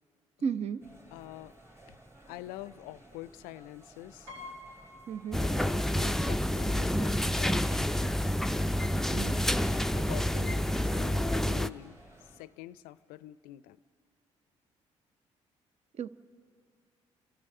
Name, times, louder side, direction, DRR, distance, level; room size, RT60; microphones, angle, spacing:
voice 1, 0.4-0.8 5.1-5.4 9.1-9.4 16.0-16.1, right 6 dB, 45° right, 16 dB, 0.6 m, -33 dB
sound 1, 0.8-12.4, right 1 dB, 15° right, 2.4 m, -56 dB
voice 2, 1.1-1.5 1.8-2.0 2.3-4.3 5.4-8.2 9.1-13.8, left 15 dB, 65° left, 17 dB, 0.5 m, -46 dB
Piano, 4.3-6.1 6.4-6.5 7.7-7.8 8.1-8.3, left 2 dB, 70° right, 2.9 m, -49 dB
sound 2, 5.3-11.7, equal, 5° left, 0.4 m, -28 dB
28.5 x 14.0 x 6.7 m, 2.4 s
figure-of-eight pair, 45°, 16 cm